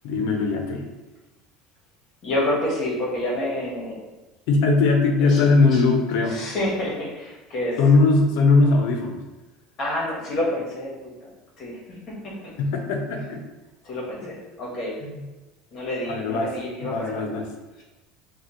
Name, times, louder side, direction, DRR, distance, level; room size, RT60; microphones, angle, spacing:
voice 1, 0.0-0.9 4.5-6.5 7.8-9.2 12.6-13.4 14.2-14.3 15.0-15.2 16.1-16.5 16.8-17.5, left 3 dB, 65° left, 3 dB, 0.8 m, -20 dB
voice 2, 2.2-4.0 5.2-5.4 5.7-5.8 6.3-7.8 9.8-10.9 11.2-11.3 11.6-12.0 12.2-12.5 13.8-14.9 15.7-17.2, left 1 dB, 35° left, -3 dB, 1.4 m, -28 dB
6.3 x 2.4 x 3.1 m, 1.1 s
cardioid pair, 165°, 0 cm